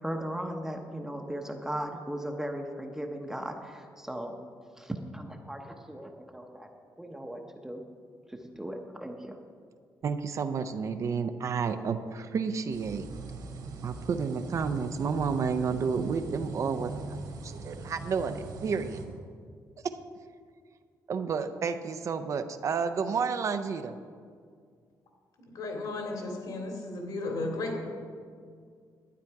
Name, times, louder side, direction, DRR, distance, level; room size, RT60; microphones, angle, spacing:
voice 1, 0.0-4.4 4.8-6.7 7.0-7.8 8.3-9.4, right 1 dB, 5° right, 3 dB, 0.8 m, -37 dB
voice 2, 10.0-13.1 13.8-16.9 17.4-19.0 19.8-20.0 21.1-23.9, right 5 dB, 45° right, 9 dB, 0.5 m, -30 dB
sound 1, 12.7-19.0, right 3 dB, 65° right, 1.9 m, -41 dB
voice 3, 25.5-27.8, left 2 dB, 65° left, 1 dB, 2.4 m, -34 dB
12.0 x 9.6 x 4.6 m, 2.1 s
cardioid pair, 150°, 7 cm